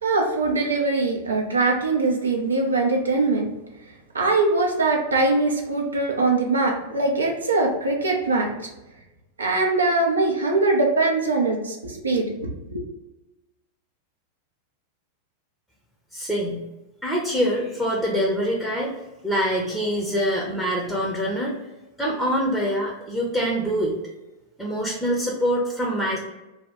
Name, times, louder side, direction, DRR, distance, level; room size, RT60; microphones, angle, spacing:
voice 1, 0.0-3.5 4.1-8.5 9.4-12.8, right 3 dB, 75° right, 0 dB, 0.5 m, -22 dB
voice 2, 16.1-16.6 17.0-18.9 19.2-21.6 22.0-24.0 24.6-26.2, equal, ahead, -3 dB, 0.6 m, -24 dB
2.7 x 2.2 x 3.4 m, 1.0 s
figure-of-eight pair, 90°, 0 cm